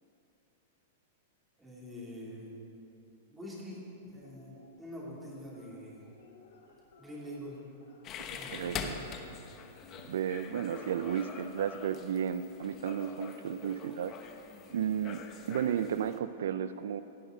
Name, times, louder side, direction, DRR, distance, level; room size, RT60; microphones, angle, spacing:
voice 1, 1.6-2.6 3.3-4.5 4.8-6.1 7.0-7.6 8.3-9.4, equal, 10° right, -5 dB, 2.8 m, -45 dB
sound 1, 4.1-4.7 5.5-8.4 8.7-10.2 11.4-12.8, left 4 dB, 80° left, 2.3 m, -60 dB
sound 2, 8.0-16.2, left 6 dB, 30° left, 0.8 m, -44 dB
voice 2, 8.5-9.0 10.1-14.1 14.7-17.0, right 9 dB, 80° right, 12 dB, 0.4 m, -33 dB
16.5 x 9.5 x 3.9 m, 2.7 s
supercardioid pair, 155°, 0 cm